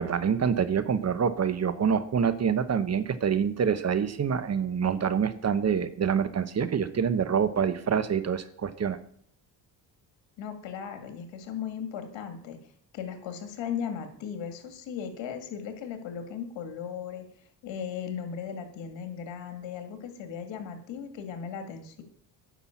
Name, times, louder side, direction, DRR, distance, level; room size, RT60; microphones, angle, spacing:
voice 1, 0.0-9.0, right 7 dB, 35° right, 13 dB, 1.0 m, -26 dB
voice 2, 10.4-12.6 12.9-17.3 17.6-22.0, left 7 dB, 80° left, 7 dB, 2.2 m, -37 dB
10.0 x 6.0 x 7.2 m, 0.62 s
cardioid pair, 95°, 44 cm